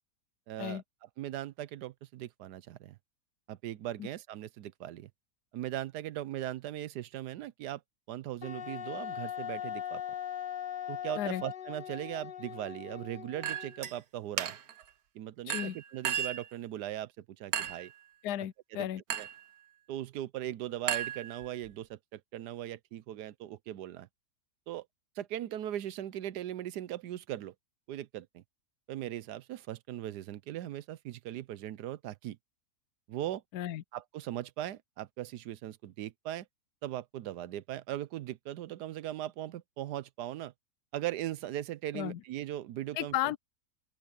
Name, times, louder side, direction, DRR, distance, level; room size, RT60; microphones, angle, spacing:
voice 1, 0.5-0.8 1.2-3.0 3.5-5.1 5.5-7.8 8.1-10.0 10.9-14.5 15.1-17.9 18.7-18.9 19.2-19.3 19.9-24.1 24.7-24.9 25.2-27.5 27.9-28.4 28.9-32.4 33.1-33.4 33.9-36.5 36.8-40.5 40.9-43.1, right 13 dB, 90° right, 1.3 m, -39 dB
Wind instrument woodwind instrument, 8.4-13.9, left 10 dB, 40° left, 0.8 m, -40 dB
Chink clink, 13.4-13.9 14.4-14.8 15.5-16.5 17.5-17.9 19.1-19.4 20.9-21.7, right 9 dB, 70° right, 1.4 m, -35 dB
voice 2, 15.5-15.8 18.2-19.0 33.5-33.8 41.9-42.2 42.9-43.4, left 12 dB, 80° left, 1.2 m, -34 dB
open air
omnidirectional pair, 1.7 m